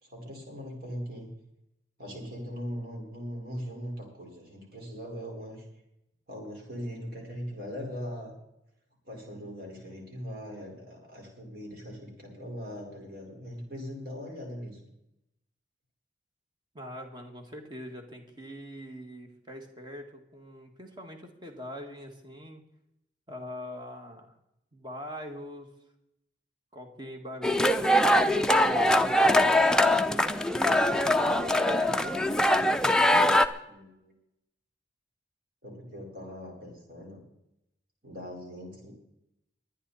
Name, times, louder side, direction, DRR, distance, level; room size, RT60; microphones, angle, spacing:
voice 1, 0.0-1.3 2.0-5.6 6.3-8.3 9.0-14.8 33.6-34.1 35.6-37.2 38.0-38.9, equal, 55° right, 0 dB, 4.8 m, -40 dB
voice 2, 16.7-22.6 23.3-24.3 24.7-25.7 26.7-27.8 28.2-29.8 30.5-32.4, equal, 25° right, 3 dB, 2.0 m, -43 dB
sound 1, 27.4-33.5, left 1 dB, 5° left, 0.5 m, -22 dB
22.5 x 10.0 x 4.3 m, 0.83 s
head